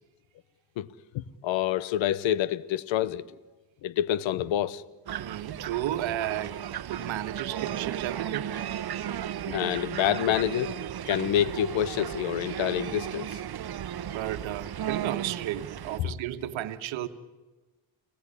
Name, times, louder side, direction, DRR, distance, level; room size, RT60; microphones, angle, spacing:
voice 1, 1.1-3.2 3.8-4.8 9.5-10.8 11.1-13.3 16.0-16.1, left 11 dB, 85° left, 1.0 m, -27 dB
sound 1, 5.1-16.0, right 10 dB, 55° right, 1.0 m, -35 dB
voice 2, 5.2-6.6 6.9-8.5 14.1-17.1, right 12 dB, 85° right, 1.4 m, -33 dB
29.5 x 17.5 x 9.8 m
supercardioid pair, 65°, 45 cm